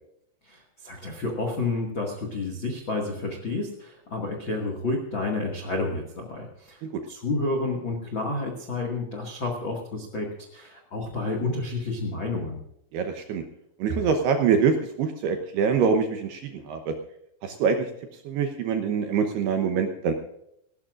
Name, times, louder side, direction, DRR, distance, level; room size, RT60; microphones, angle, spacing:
voice 1, 0.4-6.8 7.1-12.6, left 2 dB, 80° left, 2 dB, 1.1 m, -30 dB
voice 2, 12.9-13.5 13.8-17.0 17.4-20.1, right 6 dB, 75° right, 5 dB, 2.5 m, -25 dB
18.5 x 17.5 x 2.5 m, 0.78 s
omnidirectional pair, 5.8 m